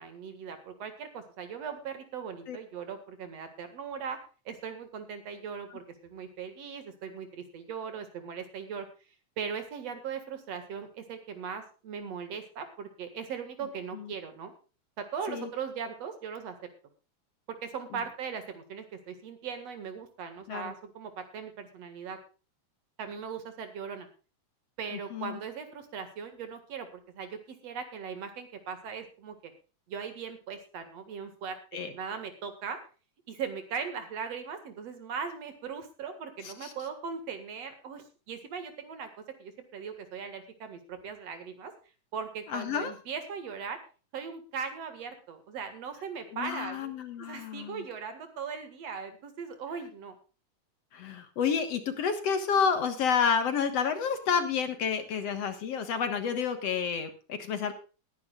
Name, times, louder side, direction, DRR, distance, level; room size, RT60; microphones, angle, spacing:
voice 1, 0.0-4.2 4.5-8.9 9.4-14.5 15.0-16.6 17.5-22.2 23.0-24.1 24.8-29.5 29.9-31.6 31.9-32.8 33.3-41.7 42.1-43.8 44.1-50.2, right 6 dB, 60° right, 8 dB, 2.9 m, -39 dB
voice 2, 42.5-42.9 46.3-47.8 50.9-57.7, left 6 dB, 60° left, 9 dB, 2.4 m, -30 dB
20.0 x 10.5 x 2.4 m, 0.34 s
omnidirectional pair, 3.4 m